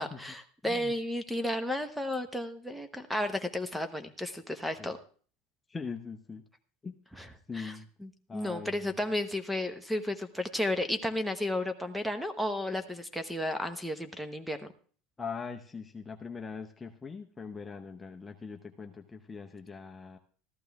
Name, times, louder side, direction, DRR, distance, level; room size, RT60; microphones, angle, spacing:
voice 1, 0.0-5.0 7.2-7.3 7.5-7.8 8.0-14.6, left 1 dB, ahead, 9 dB, 1.1 m, -33 dB
voice 2, 0.7-1.0 4.8-4.9 5.7-6.4 6.8-7.0 7.5-7.9 8.3-9.0 15.2-20.2, left 5 dB, 20° left, 3 dB, 0.8 m, -41 dB
14.0 x 11.5 x 3.5 m, 0.43 s
supercardioid pair, 100°, 0 cm